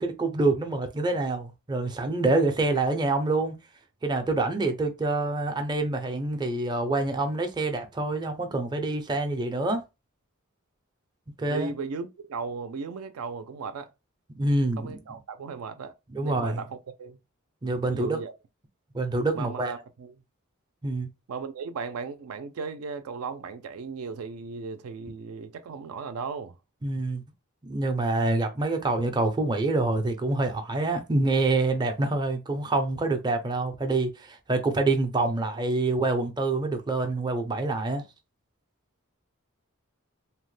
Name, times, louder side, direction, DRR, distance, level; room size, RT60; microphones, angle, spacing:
voice 1, 0.0-3.6 4.0-9.8 11.4-11.7 14.4-15.0 16.1-16.6 17.6-18.2 18.9-19.7 20.8-21.1 26.8-27.2 27.6-38.0, right 2 dB, 20° right, 0.4 m, -26 dB
voice 2, 11.5-13.9 14.8-15.9 16.2-17.2 17.9-18.3 19.3-20.1 21.3-26.5, right 5 dB, 75° right, 0.4 m, -36 dB
2.8 x 2.1 x 3.1 m
head